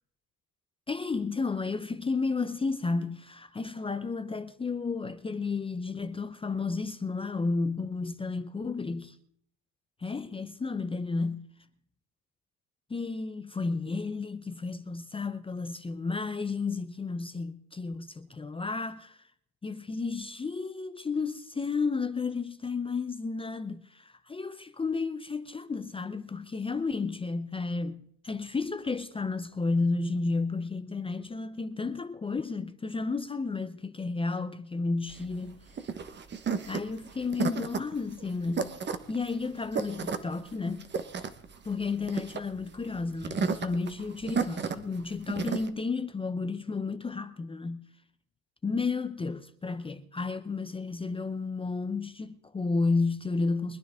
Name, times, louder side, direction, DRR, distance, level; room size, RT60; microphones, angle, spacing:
voice 1, 0.9-9.2 10.0-11.5 12.9-19.2 19.6-35.6 36.7-38.7 39.1-40.9 41.6-47.9 48.6-53.8, left 4 dB, 15° left, 0.7 m, -32 dB
sound 1, 35.1-45.7, right 5 dB, 25° right, 1.2 m, -33 dB
24.0 x 9.9 x 3.7 m
supercardioid pair, 105°, 40 cm